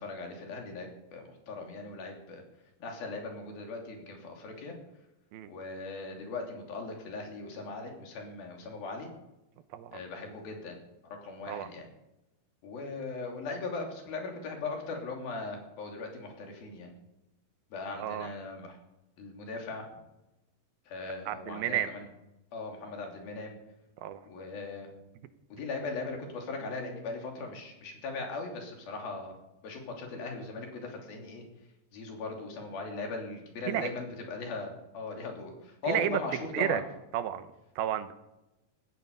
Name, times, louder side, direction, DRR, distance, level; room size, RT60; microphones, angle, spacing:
voice 1, 0.0-2.4 2.8-4.7 5.5-9.1 9.9-10.8 11.0-11.9 12.6-16.9 17.7-18.8 19.2-19.9 20.9-22.1 22.5-23.6 24.3-24.9 25.5-29.4 29.6-31.4 31.9-36.8, left 3 dB, 80° left, 1 dB, 4.9 m, -39 dB
voice 2, 9.7-10.0 11.5-11.7 18.0-18.3 21.3-21.9 24.0-24.2 33.7-33.9 35.9-36.2 36.5-36.8 37.1-38.1, right 11 dB, 90° right, 11 dB, 2.9 m, -31 dB
18.0 x 14.0 x 5.5 m, 0.94 s
omnidirectional pair, 4.2 m